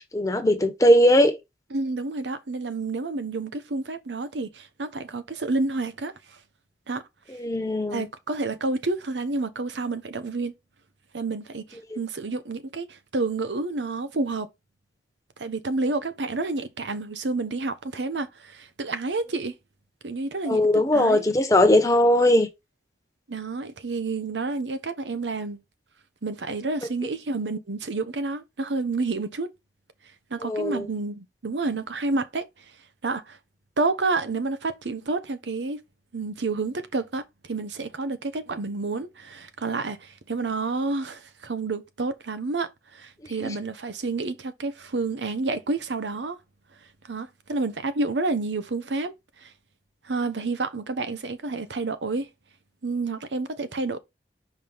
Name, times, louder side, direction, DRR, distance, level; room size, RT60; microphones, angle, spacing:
voice 1, 0.0-1.4 7.4-8.1 20.4-22.5 30.4-30.9 43.4-43.5, left 1 dB, 20° left, 1.0 m, -19 dB
voice 2, 1.7-6.1 6.9-7.0 7.9-10.5 11.1-14.5 15.4-19.5 20.0-21.2 23.3-25.6 26.2-29.5 30.3-32.5 33.0-33.4 33.8-35.8 36.1-46.4 47.1-49.1 49.4-49.5 50.0-52.3 52.8-54.0, right 3 dB, 90° right, 0.9 m, -29 dB
5.6 x 4.9 x 3.4 m
head